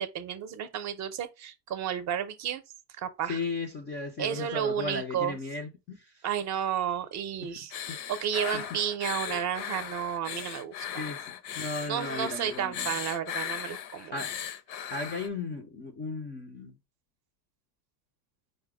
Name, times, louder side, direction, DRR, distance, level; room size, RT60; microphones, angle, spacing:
voice 1, 0.0-2.6 3.0-3.4 4.2-5.4 6.2-11.1 11.6-14.2, right 9 dB, 35° right, 0.5 m, -32 dB
voice 2, 3.2-6.3 7.4-7.6 7.9-8.0 8.5-8.6 10.9-12.9 14.1-14.3 14.9-16.8, left 3 dB, 25° left, 0.3 m, -36 dB
sound 1, 7.7-15.3, left 10 dB, 85° left, 0.8 m, -37 dB
5.0 x 2.1 x 4.7 m
supercardioid pair, 140°, 50 cm